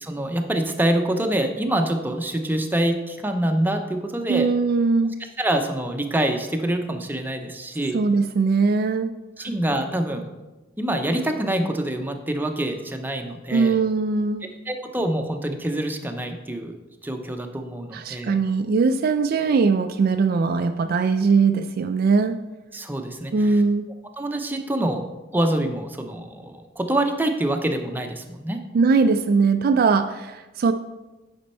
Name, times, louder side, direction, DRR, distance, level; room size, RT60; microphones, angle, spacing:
voice 1, 0.0-4.5 5.4-8.0 9.4-10.3 10.8-13.8 14.7-16.7 17.0-18.3 22.7-23.6 24.2-25.0 25.3-28.6, right 1 dB, 10° right, 4 dB, 0.6 m, -25 dB
voice 2, 4.3-5.2 7.9-9.1 9.4-9.5 13.5-14.5 17.9-22.4 23.3-23.9 28.7-30.7, right 4 dB, 50° right, 8 dB, 0.3 m, -20 dB
8.5 x 5.2 x 4.3 m, 1.1 s
head